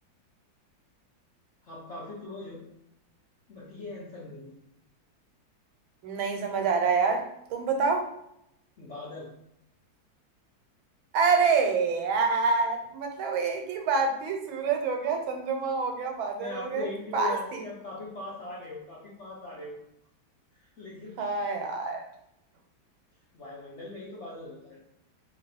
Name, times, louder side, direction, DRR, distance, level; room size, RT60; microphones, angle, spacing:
voice 1, 1.6-2.7 3.5-4.5 8.8-9.3 16.3-19.8 20.5-21.2 23.3-24.8, left 2 dB, 70° left, -5 dB, 0.6 m, -40 dB
voice 2, 6.0-7.3 7.5-8.1 11.1-16.9 17.1-17.6 21.2-22.0, right 4 dB, 90° right, 4 dB, 1.5 m, -27 dB
2.9 x 2.9 x 4.0 m, 0.79 s
omnidirectional pair, 2.1 m